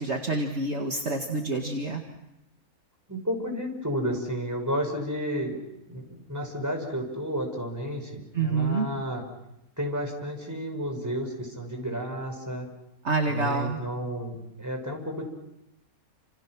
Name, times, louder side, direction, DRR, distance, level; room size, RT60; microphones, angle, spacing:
voice 1, 0.0-2.0 8.3-8.9 13.0-13.8, right 3 dB, 50° right, 2 dB, 2.2 m, -27 dB
voice 2, 3.1-5.6 5.9-9.2 9.8-12.7 13.3-15.2, equal, 10° right, 2 dB, 5.6 m, -32 dB
29.5 x 28.0 x 6.1 m, 0.86 s
omnidirectional pair, 1.5 m